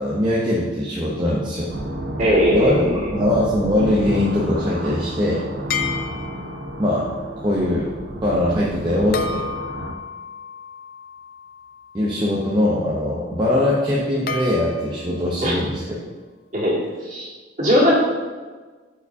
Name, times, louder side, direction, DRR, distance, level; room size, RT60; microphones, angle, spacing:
voice 1, 0.0-1.7 2.5-5.4 6.8-7.1 7.4-7.9 8.2-9.4 11.9-15.8, left 1 dB, 25° right, -5 dB, 0.8 m, -21 dB
sound 1, 1.7-9.9, right 1 dB, 60° right, 0.7 m, -30 dB
voice 2, 2.2-3.1 15.4-15.6 16.5-17.3 17.6-17.9, equal, 40° right, -7 dB, 2.3 m, -19 dB
sound 2, 5.7-6.7 9.1-12.2 14.3-15.2, left 5 dB, 50° left, 0.5 m, -31 dB
12.0 x 4.9 x 2.7 m, 1.4 s
head